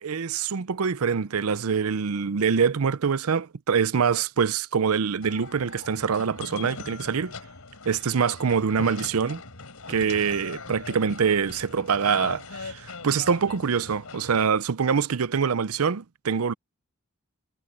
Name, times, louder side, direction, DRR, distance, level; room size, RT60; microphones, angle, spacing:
voice 1, 0.0-7.3 7.9-9.4 9.9-16.5, right 6 dB, 85° right, 0.6 m, -25 dB
sound 1, 5.2-14.5, left 4 dB, 90° left, 3.9 m, -41 dB
head